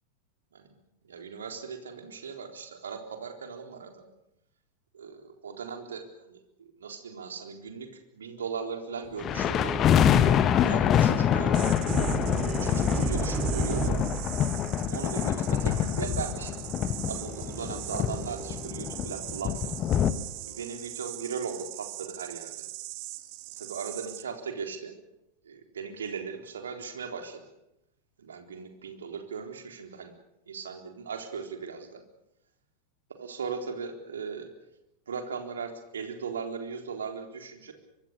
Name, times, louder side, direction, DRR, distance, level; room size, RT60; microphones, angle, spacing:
voice 1, 1.1-4.1 4.9-7.9 8.1-9.8 10.7-11.7 12.3-14.0 14.9-16.6 17.1-19.7 20.4-22.7 23.6-25.0 25.4-27.4 28.2-30.1 30.5-32.0 33.1-34.5 35.1-37.7, right 6 dB, 65° right, 4 dB, 3.9 m, -38 dB
sound 1, 9.2-20.1, left 9 dB, 30° left, 1.3 m, -26 dB
sound 2, 9.3-14.5 15.7-20.6, right 4 dB, 15° right, 5.7 m, -36 dB
sound 3, 11.5-24.2, right 18 dB, 45° right, 1.7 m, -41 dB
24.0 x 24.0 x 6.8 m, 0.86 s
figure-of-eight pair, 90°, 0 cm